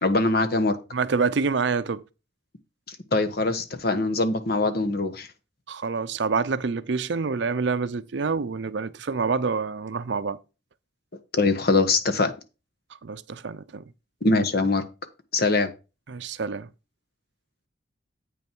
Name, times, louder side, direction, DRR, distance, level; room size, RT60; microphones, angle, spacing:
voice 1, 0.0-0.8 2.9-5.3 11.3-12.3 14.2-14.8 15.3-15.7, left 3 dB, 55° left, 1.2 m, -23 dB
voice 2, 0.9-2.0 5.7-10.4 13.0-13.8 16.1-16.7, right 4 dB, 65° right, 0.5 m, -27 dB
8.5 x 5.6 x 4.5 m
head